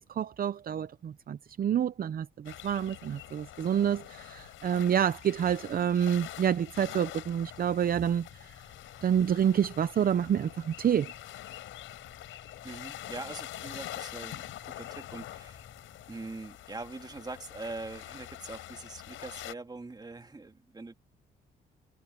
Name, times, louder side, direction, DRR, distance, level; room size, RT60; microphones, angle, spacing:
voice 1, 0.0-8.3 9.0-11.1, right 9 dB, 50° right, 0.7 m, -28 dB
sound 1, 2.5-19.5, left 14 dB, 85° left, 5.7 m, -45 dB
sound 2, 7.3-16.4, left 3 dB, 25° left, 7.0 m, -58 dB
voice 2, 12.6-15.7 16.1-20.9, right 3 dB, 20° right, 2.2 m, -43 dB
cardioid pair, 90°, 20 cm